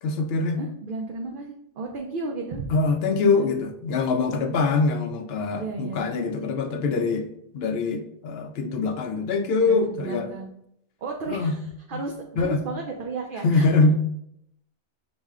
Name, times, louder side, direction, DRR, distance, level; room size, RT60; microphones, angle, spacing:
voice 1, 0.0-0.6 2.7-7.3 7.5-10.3 11.3-11.5 11.9-12.0 12.4-12.6 13.4-13.9, left 3 dB, 65° left, 6 dB, 0.8 m, -23 dB
voice 2, 0.6-2.7 3.2-3.5 4.4-4.6 5.5-6.0 9.7-10.5 11.0-13.6, right 3 dB, 60° right, 1 dB, 0.6 m, -34 dB
6.1 x 2.1 x 3.5 m, 0.74 s
omnidirectional pair, 1.2 m